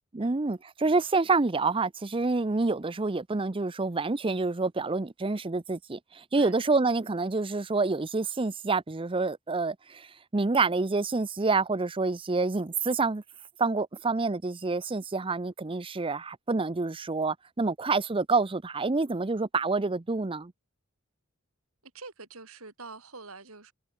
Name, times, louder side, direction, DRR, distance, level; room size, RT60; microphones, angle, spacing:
voice 1, 0.1-13.2 13.6-20.5, right 3 dB, 25° right, 0.6 m, -27 dB
voice 2, 21.9-23.7, right 3 dB, 80° right, 4.9 m, -45 dB
head